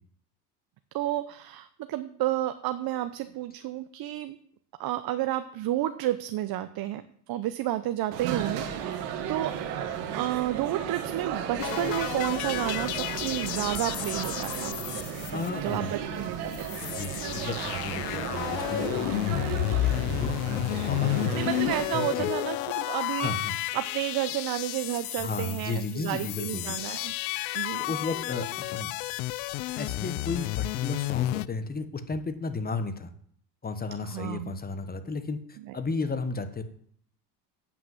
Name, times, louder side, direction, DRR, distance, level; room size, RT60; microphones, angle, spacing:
voice 1, 0.9-4.4 4.8-7.0 7.3-9.6 10.1-14.7 15.3-16.8 17.1-17.3 21.3-27.1 27.5-27.8 34.0-34.6 35.7-35.8, right 14 dB, 50° right, 10 dB, 0.8 m, -31 dB
sound 1, 8.1-21.8, right 8 dB, 80° right, 1.9 m, -34 dB
sound 2, 11.6-16.0 16.3-16.4 16.5-31.5, left 19 dB, 75° left, 0.5 m, -32 dB
voice 2, 15.3-16.0 16.8-21.4 21.9-22.3 23.2-23.6 25.2-26.8 27.5-28.9 29.8-33.1 33.6-36.6, left 3 dB, 20° left, 10 dB, 1.2 m, -34 dB
8.6 x 5.8 x 7.7 m, 0.63 s
supercardioid pair, 90°, 47 cm